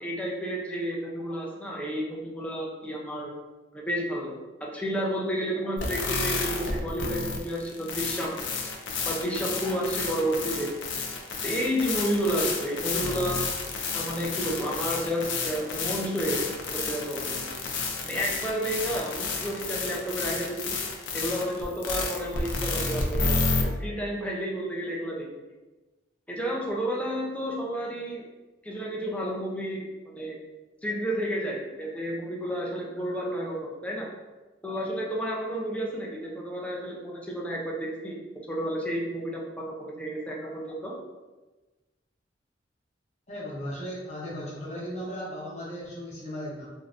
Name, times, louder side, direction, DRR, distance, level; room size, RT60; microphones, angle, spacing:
voice 1, 0.0-3.3 3.7-4.4 4.7-8.4 9.0-10.7 11.4-13.4 13.9-16.4 16.9-17.5 18.0-20.7 21.1-25.3 26.3-28.2 28.6-30.3 30.8-34.1 34.6-38.2 38.5-40.9, equal, 5° left, -3 dB, 0.5 m, -31 dB
sound 1, 5.8-23.6, left 3 dB, 85° left, 0.5 m, -31 dB
voice 2, 43.3-46.7, equal, 40° left, -6 dB, 0.8 m, -36 dB
3.2 x 2.6 x 2.5 m, 1.2 s
head